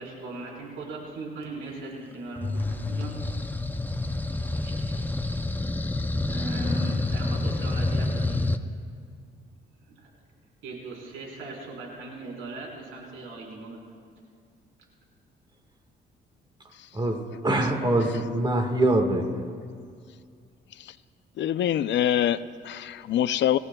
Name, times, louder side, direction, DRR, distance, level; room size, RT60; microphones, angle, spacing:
voice 1, 0.0-3.2 4.5-5.0 5.3-5.6 6.2-8.4 9.9-10.1 10.6-13.8, right 3 dB, 85° right, -2 dB, 4.2 m, -39 dB
sound 1, 2.4-8.6, left 2 dB, 10° left, 0.5 m, -28 dB
voice 2, 16.9-19.3, right 1 dB, 20° right, 3 dB, 1.6 m, -24 dB
voice 3, 21.4-23.6, left 11 dB, 65° left, 14 dB, 0.5 m, -25 dB
26.0 x 15.0 x 2.3 m, 2.2 s
cardioid pair, 90°, 20 cm